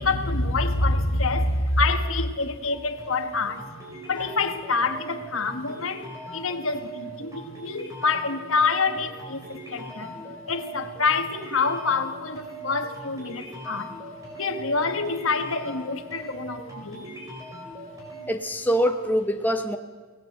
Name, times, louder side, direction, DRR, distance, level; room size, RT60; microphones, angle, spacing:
voice 1, 0.0-3.6 4.1-10.2 10.5-14.0 14.4-17.1, left 3 dB, 75° left, 7 dB, 1.5 m, -26 dB
sound 1, 2.7-18.3, right 2 dB, 15° right, 4.9 m, -40 dB
voice 2, 18.3-19.8, equal, 10° left, 5 dB, 0.9 m, -24 dB
23.0 x 18.5 x 7.8 m, 1.4 s
head